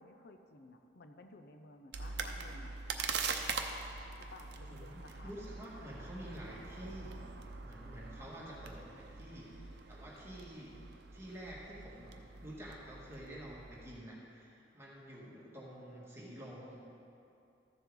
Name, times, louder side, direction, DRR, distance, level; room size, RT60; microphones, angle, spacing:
voice 1, 0.0-2.7 4.3-5.3 8.2-8.5, left 2 dB, 60° left, 6 dB, 0.6 m, -55 dB
sound 1, 1.9-14.0, right 5 dB, 65° right, 0.7 m, -43 dB
voice 2, 4.7-7.2 7.6-10.8 11.1-16.8, right 1 dB, 15° right, -6 dB, 1.9 m, -49 dB
14.0 x 7.2 x 3.9 m, 2.6 s
head